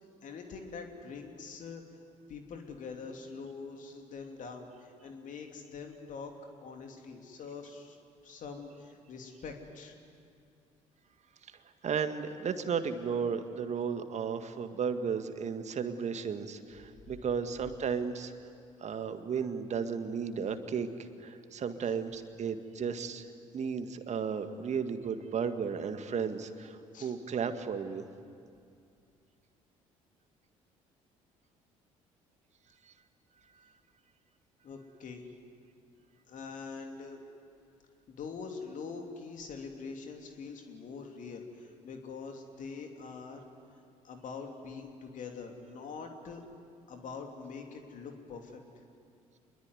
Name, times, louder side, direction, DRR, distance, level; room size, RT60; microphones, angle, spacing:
voice 1, 0.2-1.8 2.3-6.3 6.6-8.0 8.2-9.9 26.9-27.1 34.6-35.3 36.3-37.2 38.1-43.4 44.0-46.4 46.9-48.6, left 5 dB, 45° left, 3 dB, 3.0 m, -44 dB
voice 2, 11.8-18.3 18.8-20.9 21.2-23.3 23.5-28.1 32.9-33.0, right 6 dB, 40° right, 9 dB, 1.8 m, -34 dB
26.5 x 21.5 x 9.7 m, 2.3 s
figure-of-eight pair, 50°, 18 cm